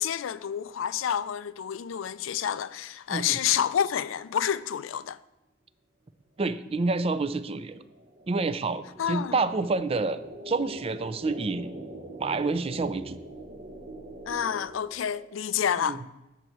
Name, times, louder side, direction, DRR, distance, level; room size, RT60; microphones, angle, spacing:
voice 1, 0.0-5.2 9.0-9.3 14.3-16.0, left 9 dB, 80° left, 0.4 m, -29 dB
voice 2, 6.4-7.8 8.3-11.7 12.2-13.2 15.8-16.0, right 3 dB, 30° right, 0.4 m, -28 dB
sound 1, 6.7-15.6, right 1 dB, 45° right, 0.9 m, -43 dB
9.3 x 4.4 x 6.3 m
head